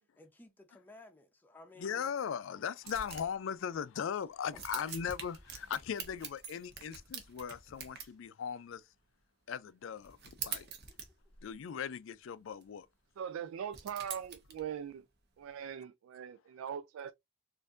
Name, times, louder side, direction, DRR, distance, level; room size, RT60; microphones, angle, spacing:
voice 1, 0.2-2.1 10.6-11.0, left 2 dB, 10° left, 0.6 m, -56 dB
voice 2, 1.8-8.8 9.5-10.2 10.4-10.7 11.4-12.9, left 7 dB, 70° left, 0.4 m, -38 dB
sound 1, 2.8-3.3 3.8-3.9 4.5-8.1 10.0-11.5 12.5-12.6 13.7-14.6, right 6 dB, 55° right, 0.9 m, -45 dB
voice 3, 13.2-15.0 15.4-17.1, right 8 dB, 85° right, 0.3 m, -41 dB
4.3 x 2.6 x 2.4 m
head